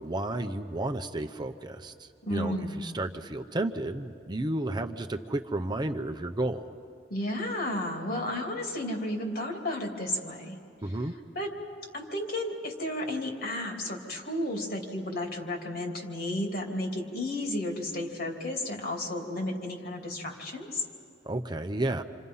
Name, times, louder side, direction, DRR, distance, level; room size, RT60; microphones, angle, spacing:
voice 1, 0.0-6.7 10.8-11.1 21.3-22.0, right 1 dB, 25° right, 6 dB, 0.7 m, -32 dB
voice 2, 2.2-2.8 7.1-10.6 11.3-11.5 11.9-20.8, left 1 dB, 60° left, 2 dB, 2.9 m, -33 dB
28.0 x 27.0 x 5.6 m, 2.4 s
head